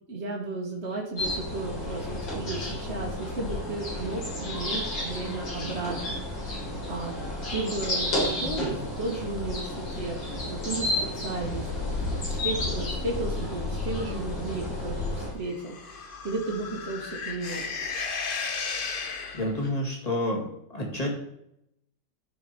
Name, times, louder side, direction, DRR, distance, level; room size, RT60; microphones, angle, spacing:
voice 1, 0.1-7.1 7.5-17.6, right 2 dB, 40° right, -2 dB, 1.6 m, -34 dB
sound 1, 1.2-15.3, left 1 dB, 75° left, 3.7 m, -31 dB
sound 2, 15.4-19.7, left 5 dB, 50° left, 0.6 m, -35 dB
voice 2, 19.3-21.1, left 1 dB, 20° left, -1 dB, 2.1 m, -29 dB
13.5 x 4.7 x 4.2 m, 0.78 s
omnidirectional pair, 2.1 m